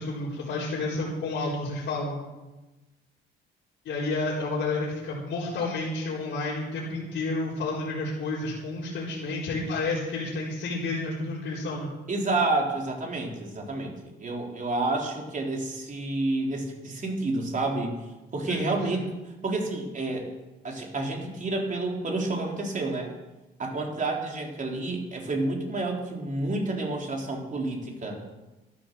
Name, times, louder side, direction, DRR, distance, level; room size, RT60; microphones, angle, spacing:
voice 1, 0.0-2.2 3.8-11.9 18.5-19.0, left 2 dB, 75° left, -7 dB, 4.1 m, -30 dB
voice 2, 12.1-18.0 18.3-19.1 19.4-20.3 20.6-23.1 23.6-28.2, right 2 dB, 40° right, 0 dB, 3.8 m, -29 dB
13.0 x 11.5 x 6.9 m, 1.1 s
cardioid pair, 90°, 20 cm